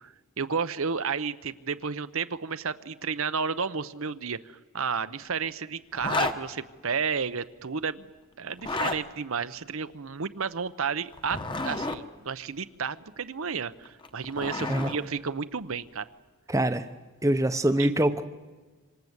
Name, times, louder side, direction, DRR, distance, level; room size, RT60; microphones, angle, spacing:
voice 1, 0.0-8.1 8.4-16.1 17.8-17.9, right 5 dB, 70° right, 12 dB, 0.8 m, -32 dB
Zipper (clothing), 6.0-6.4 8.5-9.0 11.1-12.0 13.9-15.0, left 3 dB, 20° left, 1.2 m, -30 dB
voice 2, 16.5-16.9 17.2-18.2, right 1 dB, 15° right, 9 dB, 0.8 m, -24 dB
26.5 x 26.0 x 8.1 m, 1.3 s
head